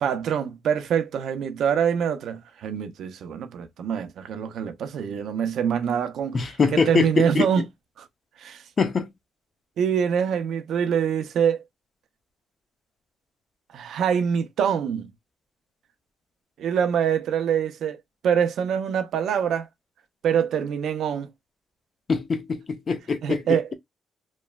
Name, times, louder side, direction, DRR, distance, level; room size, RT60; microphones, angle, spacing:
voice 1, 0.0-6.4 6.7-7.6 8.0-8.1 8.4-8.6 9.8-11.6 13.7-15.1 16.6-18.0 18.2-19.7 20.2-21.3 23.2-23.7, right 8 dB, 75° right, 0.5 m, -25 dB
voice 2, 6.3-7.5 8.8-9.1 22.1-23.6, left 4 dB, 40° left, 0.5 m, -23 dB
3.0 x 2.1 x 2.2 m
cardioid pair, 105°, 0 cm